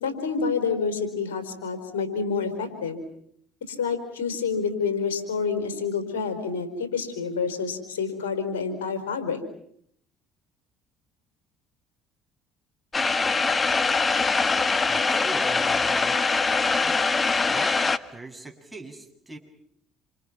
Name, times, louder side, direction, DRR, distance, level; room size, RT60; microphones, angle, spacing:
voice 1, 0.0-3.0 3.7-9.4, left 5 dB, 90° left, 8 dB, 4.6 m, -28 dB
sound 1, 12.9-18.0, left 4 dB, 30° left, 1.5 m, -23 dB
voice 2, 14.9-16.2 16.8-17.0 17.5-17.8 18.1-19.4, right 2 dB, 10° right, 3 dB, 7.5 m, -40 dB
28.5 x 28.0 x 6.0 m, 0.68 s
hypercardioid pair, 65°, 0 cm